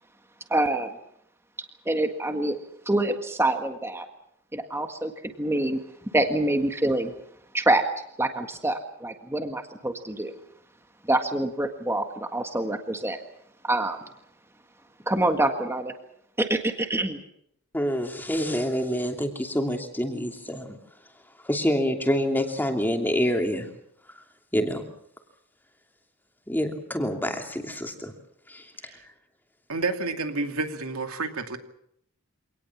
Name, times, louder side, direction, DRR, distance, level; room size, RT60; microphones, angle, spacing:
voice 1, 0.5-0.9 1.8-2.6 2.8-4.1 4.5-5.8 6.1-7.1 7.5-7.8 8.2-10.3 11.1-13.2 13.6-14.0 15.1-15.9 16.4-17.2, right 1 dB, 10° right, 6 dB, 1.7 m, -26 dB
voice 2, 17.7-20.8 21.4-23.7 24.5-24.9 26.5-28.1 28.5-28.7, equal, 10° left, 4 dB, 2.8 m, -27 dB
voice 3, 29.7-31.6, right 3 dB, 90° right, 6 dB, 2.5 m, -29 dB
25.5 x 19.0 x 7.3 m, 0.74 s
head